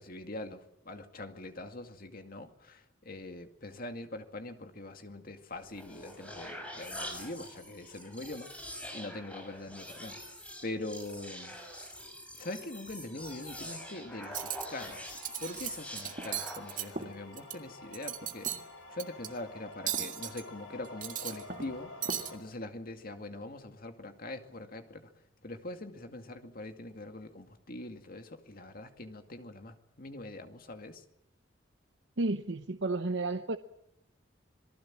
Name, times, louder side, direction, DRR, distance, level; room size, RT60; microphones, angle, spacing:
voice 1, 0.0-10.2 10.6-11.6 12.4-18.5 18.9-25.1 25.4-31.0, left 2 dB, 50° left, 2.3 m, -43 dB
sound 1, 5.5-17.0, equal, 5° left, 5.1 m, -45 dB
sound 2, 13.1-22.4, left 2 dB, 85° left, 4.2 m, -51 dB
Cutlery silverware, 14.2-14.7 15.1-15.7 16.0-17.6 17.9-18.6 19.0-19.3 19.9-20.4 20.9-21.7 22.0-22.3, right 9 dB, 45° right, 1.9 m, -36 dB
voice 2, 32.2-33.6, right 2 dB, 65° right, 0.9 m, -32 dB
27.0 x 19.0 x 7.5 m
head